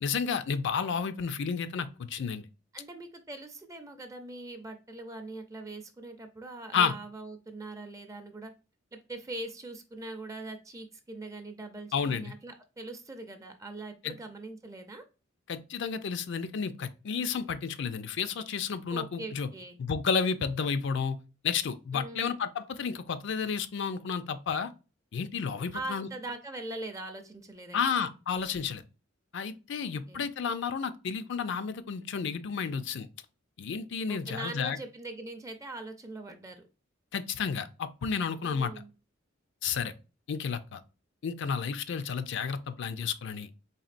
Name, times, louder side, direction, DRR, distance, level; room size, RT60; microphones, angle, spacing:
voice 1, 0.0-2.5 6.7-6.9 11.9-12.3 14.0-14.1 15.5-19.5 19.8-21.2 21.4-24.7 25.1-26.1 27.7-28.8 29.3-33.1 33.6-34.8 37.1-38.7 39.6-39.9 40.3-40.8 41.2-43.5, left 6 dB, 65° left, 0.4 m, -31 dB
voice 2, 2.7-8.5 8.9-15.0 18.9-19.8 21.9-22.3 25.7-27.8 29.8-30.2 34.1-36.6 38.4-38.9, right 2 dB, 15° right, 0.4 m, -42 dB
4.1 x 3.4 x 2.5 m
head